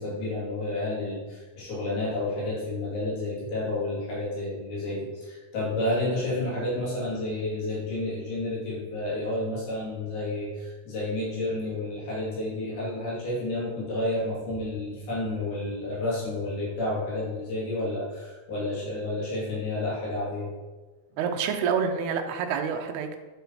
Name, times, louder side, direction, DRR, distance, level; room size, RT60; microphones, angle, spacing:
voice 1, 0.0-20.5, left 2 dB, 70° left, -7 dB, 5.1 m, -30 dB
voice 2, 21.2-23.2, right 6 dB, 85° right, 4 dB, 2.9 m, -27 dB
10.5 x 6.7 x 4.6 m, 1.3 s
omnidirectional pair, 4.6 m